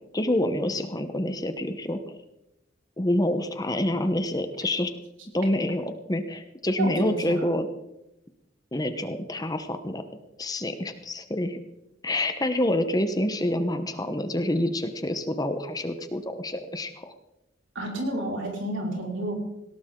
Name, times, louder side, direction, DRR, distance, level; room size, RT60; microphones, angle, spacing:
voice 1, 0.1-2.2 3.0-4.9 5.3-7.7 8.7-10.0 10.4-11.6 12.0-17.1, left 1 dB, 20° left, 8 dB, 1.1 m, -27 dB
voice 2, 6.8-7.5 17.7-19.3, right 1 dB, 75° right, -1 dB, 5.1 m, -30 dB
18.5 x 17.5 x 3.9 m, 0.89 s
head